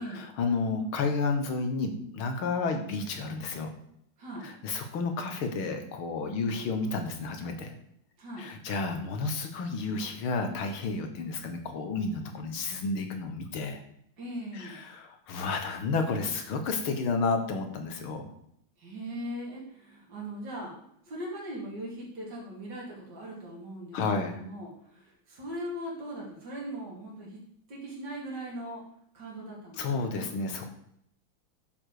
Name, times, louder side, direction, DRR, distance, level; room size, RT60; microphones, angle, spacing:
voice 1, 0.0-3.7 4.4-7.7 8.4-13.8 14.5-18.3 23.9-24.4 29.8-30.7, left 4 dB, 85° left, 6 dB, 2.2 m, -31 dB
voice 2, 4.2-4.5 6.3-6.6 8.2-8.5 14.2-14.9 18.8-20.7 21.0-27.4 27.7-28.8 29.1-30.2, right 1 dB, 55° right, -5 dB, 3.2 m, -40 dB
9.7 x 7.1 x 5.0 m, 0.71 s
omnidirectional pair, 2.2 m